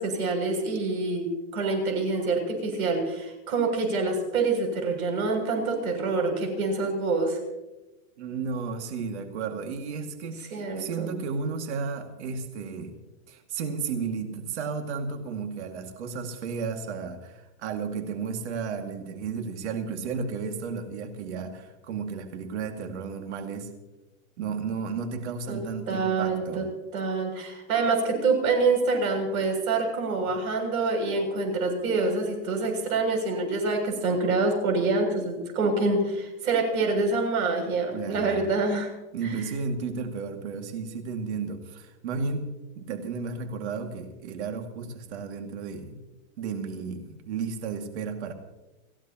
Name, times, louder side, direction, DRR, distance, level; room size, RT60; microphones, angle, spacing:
voice 1, 0.0-7.4 10.5-11.1 25.5-25.6 25.9-26.6 26.9-38.9 39.2-39.4, right 3 dB, 85° right, 3 dB, 7.1 m, -26 dB
voice 2, 8.2-12.9 13.3-23.7 24.4-26.6 37.9-38.4 39.1-46.0 46.4-48.3, right 5 dB, 50° right, 5 dB, 2.3 m, -33 dB
30.0 x 15.5 x 2.9 m, 1.0 s
supercardioid pair, 175°, 42 cm